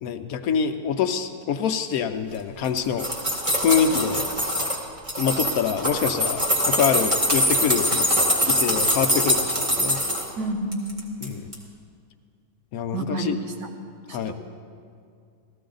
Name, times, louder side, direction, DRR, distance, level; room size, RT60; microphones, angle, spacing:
voice 1, 0.0-3.1 3.6-4.2 5.2-7.9 8.5-10.0 11.2-11.5 12.7-13.4 14.1-14.3, left 7 dB, 70° left, 7 dB, 1.0 m, -25 dB
sound 1, 2.6-4.8 5.1-10.3 10.7-11.3 11.5-11.6, equal, 20° right, 1.5 m, -23 dB
voice 2, 10.4-10.8 12.9-13.7 14.3-14.4, right 2 dB, 85° right, 3 dB, 1.8 m, -29 dB
15.0 x 14.0 x 3.9 m, 2.4 s
omnidirectional pair, 1.8 m